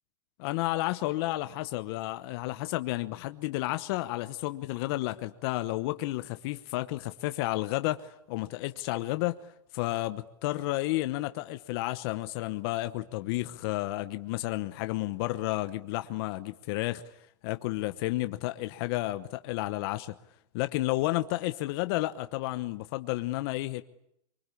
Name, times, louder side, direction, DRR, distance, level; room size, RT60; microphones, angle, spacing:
voice 1, 0.4-9.4 9.7-17.0 17.4-20.1 20.5-23.8, left 18 dB, 55° left, 1.1 m, -31 dB
25.0 x 24.0 x 8.5 m
supercardioid pair, 135°, 15 cm